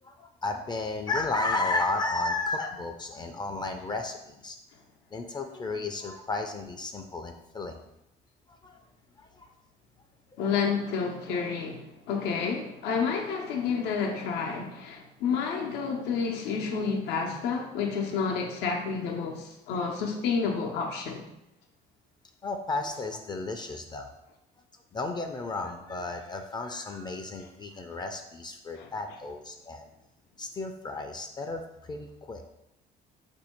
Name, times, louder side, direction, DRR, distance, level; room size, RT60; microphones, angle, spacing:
voice 1, 0.0-4.6 5.1-7.8 8.5-8.8 9.2-9.5 10.4-10.5 22.4-24.2 24.9-29.9 30.4-32.5, left 3 dB, 25° left, 0.4 m, -33 dB
voice 2, 10.4-21.2 28.8-28.9, left 5 dB, 85° left, 0.6 m, -30 dB
4.4 x 2.6 x 4.3 m
cardioid pair, 110°, 17 cm